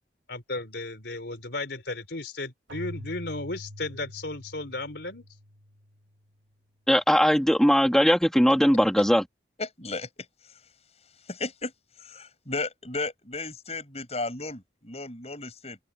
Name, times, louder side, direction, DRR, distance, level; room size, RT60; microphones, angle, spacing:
voice 1, 0.3-5.3, left 2 dB, 65° left, 4.2 m, -35 dB
Keyboard (musical), 2.7-6.2, equal, 85° right, 3.1 m, -44 dB
voice 2, 6.9-9.2, equal, 5° left, 3.2 m, -20 dB
voice 3, 9.6-10.3 11.3-11.7 12.0-15.8, left 3 dB, 35° left, 6.7 m, -34 dB
open air
head